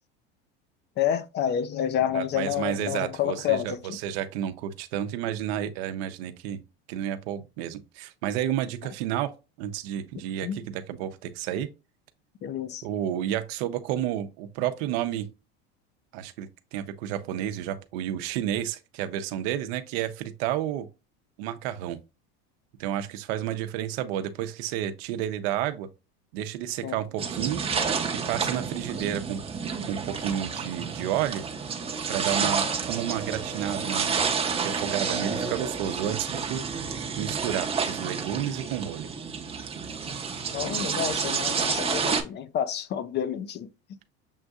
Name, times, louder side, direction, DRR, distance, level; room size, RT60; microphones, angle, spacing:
voice 1, 1.0-4.0 10.4-10.6 12.4-12.8 26.8-27.0 32.4-32.5 40.5-44.1, left 9 dB, 35° left, 0.4 m, -29 dB
voice 2, 2.1-6.6 6.9-9.3 9.6-11.7 12.8-15.3 16.1-20.9 21.4-22.0 22.8-25.9 26.3-27.6 28.3-29.4 29.9-31.4 32.1-34.1 34.6-36.6 37.2-39.1, right 11 dB, 75° right, 0.7 m, -31 dB
sound 1, 27.2-42.2, right 5 dB, 20° right, 0.7 m, -30 dB
7.1 x 2.6 x 2.3 m
supercardioid pair, 120°, 32 cm